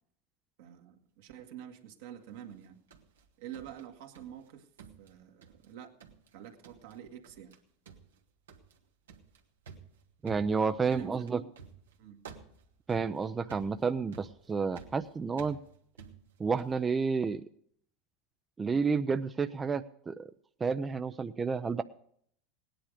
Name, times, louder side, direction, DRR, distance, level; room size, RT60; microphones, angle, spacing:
voice 1, 0.6-2.8 3.4-4.7 5.0-6.0 6.3-7.6 10.6-11.3 12.0-12.2, right 10 dB, 70° right, 3 dB, 1.9 m, -47 dB
sound 1, 2.5-4.5 4.8-5.7 6.0-6.4 6.6-7.0 7.2-7.6 7.9-16.9, right 6 dB, 90° right, 1.6 m, -53 dB
voice 2, 10.2-11.4 12.9-15.6 16.4-17.4 18.6-20.3 20.6-21.8, right 5 dB, 20° right, 9 dB, 0.5 m, -30 dB
17.5 x 10.0 x 5.0 m, 0.65 s
hypercardioid pair, 100°, 0 cm